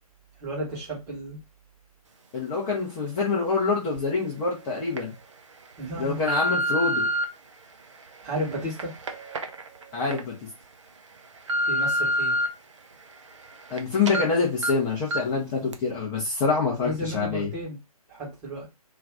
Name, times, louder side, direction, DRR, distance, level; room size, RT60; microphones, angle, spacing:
voice 1, 0.4-1.4 5.8-6.3 8.2-8.9 11.7-12.4 16.8-17.8 18.1-18.7, right 1 dB, 15° right, 1.1 m, -33 dB
voice 2, 2.3-5.1 6.0-7.1 9.9-10.3 13.7-17.5, left 4 dB, 10° left, 0.6 m, -26 dB
sound 1, 4.0-4.1 4.7-5.0 5.6-7.2 7.9-10.2 10.6-10.7 11.2-12.5 12.9-13.8 14.1-14.2 14.6-14.7 15.1-15.4 15.7-15.8, equal, 50° right, 0.6 m, -28 dB
2.6 x 2.3 x 3.4 m
figure-of-eight pair, 135°, 20 cm